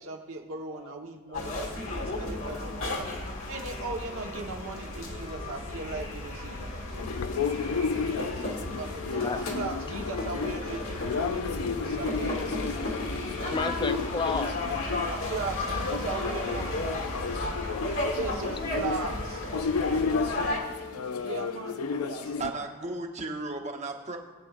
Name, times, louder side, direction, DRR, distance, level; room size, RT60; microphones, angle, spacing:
voice 1, 0.0-3.1 3.5-7.5 8.5-12.6 13.4-14.6 15.1-16.8 18.1-19.5 21.1-22.5, right 3 dB, 70° right, 1 dB, 1.3 m, -38 dB
sound 1, 1.3-20.6, left 2 dB, 65° left, 1.6 m, -34 dB
voice 2, 1.3-3.5 7.5-7.6 9.2-9.5 13.5-15.1 18.5-18.6 20.7-21.3 21.9-22.0, left 3 dB, 20° left, 10 dB, 0.4 m, -37 dB
sound 2, 7.0-22.5, left 5 dB, 85° left, 0.5 m, -33 dB
voice 3, 22.4-24.2, right 3 dB, 30° right, 3 dB, 1.0 m, -35 dB
20.0 x 8.5 x 2.5 m, 1.4 s
head